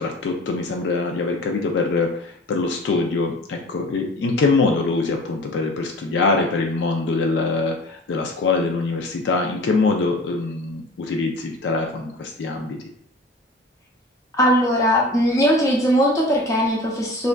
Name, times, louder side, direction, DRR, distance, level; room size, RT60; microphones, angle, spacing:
voice 1, 0.0-12.8, left 3 dB, 75° left, 3 dB, 0.4 m, -23 dB
voice 2, 14.4-17.3, equal, 20° left, -3 dB, 0.5 m, -19 dB
3.2 x 2.5 x 2.2 m, 0.67 s
head